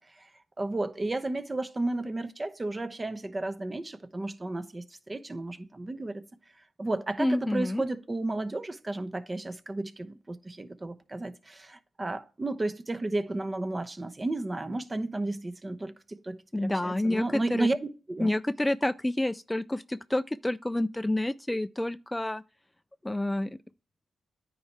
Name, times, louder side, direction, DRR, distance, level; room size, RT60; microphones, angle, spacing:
voice 1, 0.6-6.2 6.8-18.3, right 2 dB, 30° right, 0.8 m, -33 dB
voice 2, 7.2-7.8 16.5-17.7 18.2-22.4 23.0-23.6, left 1 dB, 15° left, 0.3 m, -29 dB
9.6 x 4.6 x 4.3 m
supercardioid pair, 50°, 0 cm